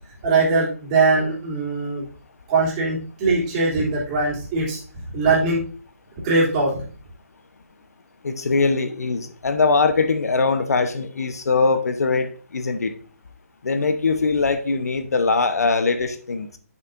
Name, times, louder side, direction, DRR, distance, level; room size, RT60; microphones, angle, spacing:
voice 1, 0.2-2.0 2.5-5.6 6.2-6.8, right 3 dB, 25° right, -6 dB, 3.2 m, -21 dB
voice 2, 8.2-12.9 13.6-16.6, left 4 dB, 80° left, 9 dB, 1.0 m, -21 dB
8.5 x 6.8 x 2.6 m, 0.40 s
hypercardioid pair, 160°, 8 cm